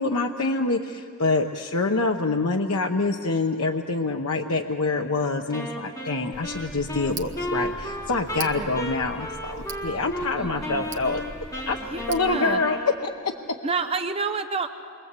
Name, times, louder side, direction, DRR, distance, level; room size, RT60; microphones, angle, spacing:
voice 1, 0.0-11.2 11.7-11.8 12.1-13.3, left 3 dB, 80° left, 3 dB, 0.9 m, -26 dB
Wind instrument woodwind instrument, 5.5-10.3 10.6-13.2, equal, 15° left, 2.7 m, -34 dB
Tick, 6.3-12.4, right 3 dB, 50° right, 1.4 m, -40 dB
voice 2, 10.4-10.9 11.8-12.6 13.6-14.7, right 4 dB, 25° right, 7 dB, 0.7 m, -29 dB
28.0 x 23.0 x 8.3 m, 2.5 s
head